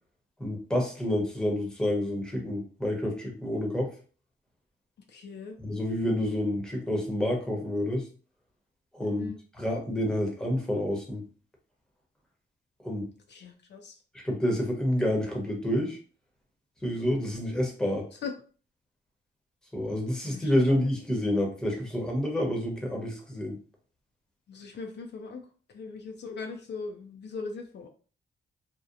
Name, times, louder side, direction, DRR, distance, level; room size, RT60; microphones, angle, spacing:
voice 1, 0.4-3.9 5.6-8.1 8.9-9.3 9.6-11.2 12.8-13.1 14.1-16.0 16.8-18.1 19.7-23.6, left 1 dB, 5° left, 0 dB, 0.8 m, -28 dB
voice 2, 5.1-5.6 9.0-9.4 13.3-14.0 18.1-18.3 20.3-20.7 24.5-25.4 25.7-27.9, left 4 dB, 60° left, 4 dB, 0.4 m, -40 dB
2.7 x 2.1 x 2.5 m, 0.39 s
cardioid pair, 90°, 20 cm